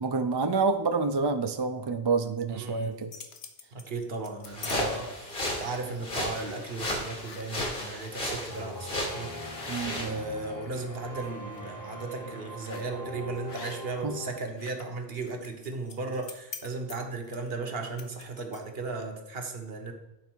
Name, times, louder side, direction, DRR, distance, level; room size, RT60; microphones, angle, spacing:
voice 1, 0.0-3.1 9.7-10.2 14.0-14.2, right 4 dB, 35° right, 7 dB, 0.4 m, -28 dB
voice 2, 2.5-3.1 3.7-5.3 5.6-9.3 9.9-19.9, right 3 dB, 70° right, 5 dB, 1.3 m, -36 dB
sound 1, 2.8-4.8 5.2-5.7 6.3-6.4 6.7-7.5 8.0-8.1 8.5-8.6 9.2-10.9 11.3-11.6 12.6-13.0 13.5-14.1 14.3-18.8, left 6 dB, 80° left, 1.1 m, -46 dB
sound 2, 4.5-10.2, left 1 dB, 60° left, 2.0 m, -34 dB
sound 3, 8.5-14.4, left 1 dB, 20° left, 0.9 m, -42 dB
9.4 x 4.0 x 6.1 m, 0.96 s
omnidirectional pair, 1.0 m